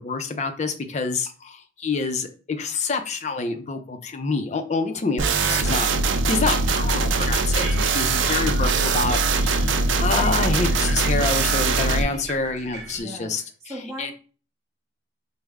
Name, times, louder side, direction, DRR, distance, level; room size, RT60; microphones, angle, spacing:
voice 1, 0.0-9.7 10.0-13.4 14.0-14.1, left 4 dB, 40° left, 7 dB, 0.4 m, -27 dB
sound 1, 5.2-12.0, right 3 dB, 90° right, 0.4 m, -22 dB
voice 2, 5.4-5.7 8.2-8.4 13.0-14.1, right 1 dB, 15° right, -5 dB, 0.7 m, -39 dB
sound 2, 6.3-8.6 9.0-11.0 11.6-11.7, right 1 dB, 35° right, 1.4 m, -45 dB
sound 3, 7.2-13.0, right 2 dB, 65° right, 0.9 m, -39 dB
3.4 x 2.0 x 3.4 m, 0.36 s
head